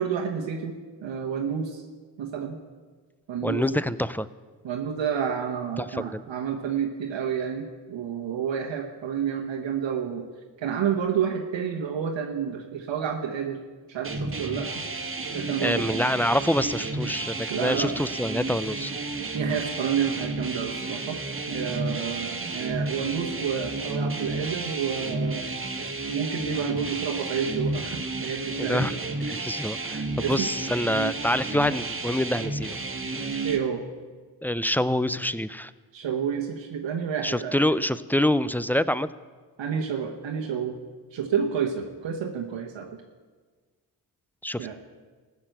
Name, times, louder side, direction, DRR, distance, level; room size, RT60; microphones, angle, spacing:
voice 1, 0.0-1.8 2.2-2.6 3.3-3.8 4.6-10.2 10.6-13.6 13.9-14.8 15.3-16.0 17.5-17.9 19.3-21.2 21.5-25.4 26.1-28.9 30.2-30.5 33.4-33.8 35.9-37.6 39.6-40.8 41.1-43.0 44.6-44.8, right 7 dB, 90° right, 1 dB, 1.1 m, -29 dB
voice 2, 3.4-4.3 5.8-6.2 15.6-18.9 28.6-29.0 29.3-32.8 34.4-35.7 37.2-39.1 44.4-44.8, left 1 dB, 5° left, 16 dB, 0.4 m, -26 dB
sound 1, 14.0-33.6, right 3 dB, 30° right, 1.5 m, -32 dB
15.5 x 5.9 x 7.8 m, 1.4 s
cardioid pair, 55°, 44 cm